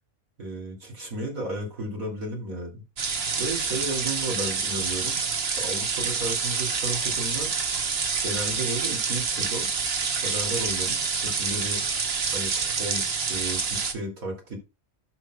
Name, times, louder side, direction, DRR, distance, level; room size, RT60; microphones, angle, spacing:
voice 1, 0.4-2.8 3.4-5.2 5.5-7.6 8.2-9.7 10.2-11.8 12.3-14.6, right 1 dB, 80° right, 0 dB, 3.3 m, -33 dB
sound 1, 3.0-13.9, right 5 dB, 50° right, 1.3 m, -27 dB
14.5 x 6.2 x 2.4 m, 0.26 s
omnidirectional pair, 1.4 m